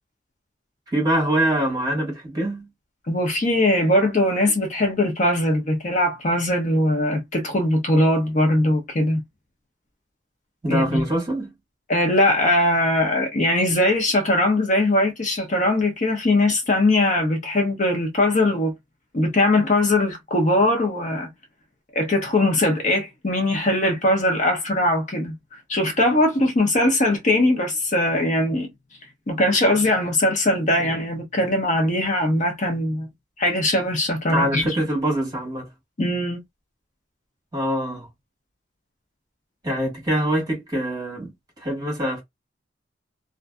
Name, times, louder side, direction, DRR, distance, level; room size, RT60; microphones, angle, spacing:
voice 1, 0.9-2.7 10.6-11.5 34.3-35.7 37.5-38.1 39.6-42.2, right 1 dB, 20° right, 1.3 m, -24 dB
voice 2, 3.1-9.2 10.7-11.1 11.9-18.7 19.1-21.3 21.9-25.4 25.7-28.7 29.3-33.1 33.4-34.7 36.0-36.4, left 1 dB, 40° left, 0.6 m, -21 dB
2.6 x 2.5 x 2.2 m
head